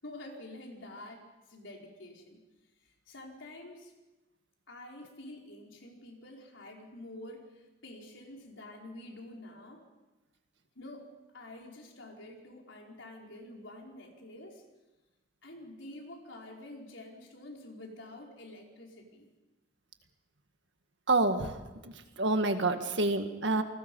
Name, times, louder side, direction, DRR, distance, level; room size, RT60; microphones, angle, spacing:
voice 1, 0.0-2.4 2.8-3.9 4.7-9.8 10.7-11.1 11.3-14.6 15.4-19.3, left 1 dB, 70° left, 0 dB, 4.6 m, -48 dB
voice 2, 21.1-21.6 21.8-23.6, right 2 dB, 65° right, 7 dB, 1.8 m, -28 dB
28.5 x 20.0 x 5.5 m, 1.1 s
head